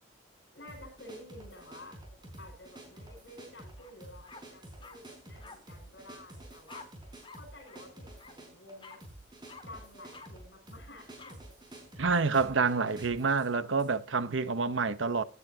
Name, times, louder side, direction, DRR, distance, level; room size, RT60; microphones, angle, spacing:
voice 1, 0.5-2.0 2.4-6.9 7.4-9.0 9.6-11.4, left 1 dB, 70° left, 6.2 m, -51 dB
sound 1, 0.7-14.0, right 1 dB, 25° right, 4.8 m, -50 dB
sound 2, 3.8-3.9 4.3-5.0 5.4-5.6 6.7-6.9 7.2-7.4 7.7-7.8 8.2-8.3 8.8-9.0 9.5-9.6 10.1-10.3 11.2-11.3, left 4 dB, 25° left, 1.9 m, -49 dB
voice 2, 12.0-15.2, right 4 dB, 90° right, 1.0 m, -28 dB
16.5 x 10.5 x 2.8 m
head